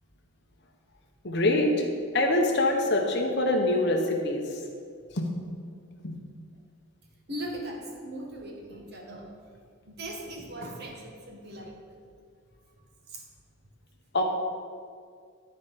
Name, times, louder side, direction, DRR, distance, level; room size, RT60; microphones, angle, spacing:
voice 1, 1.2-1.7 2.1-4.4 5.2-5.3 6.0-6.2 14.1-14.2, left 2 dB, 50° left, 2 dB, 1.0 m, -24 dB
voice 2, 7.3-9.3 9.9-11.7 13.1-13.2, right 1 dB, 50° right, 1 dB, 1.3 m, -39 dB
11.5 x 4.3 x 5.3 m, 2.1 s
head